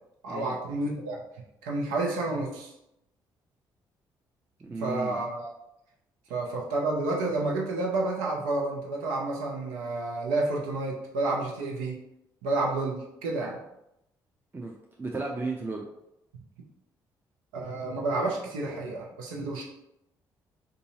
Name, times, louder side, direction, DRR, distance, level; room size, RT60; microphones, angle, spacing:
voice 1, 0.2-1.2 1.6-2.7 4.8-5.5 6.3-12.0 12.4-13.6 17.5-19.6, right 2 dB, 85° right, -1 dB, 0.6 m, -30 dB
voice 2, 4.6-5.2 14.5-15.8, right 3 dB, 20° right, -1 dB, 0.6 m, -34 dB
3.8 x 2.6 x 2.8 m, 0.83 s
hypercardioid pair, 50°, 10 cm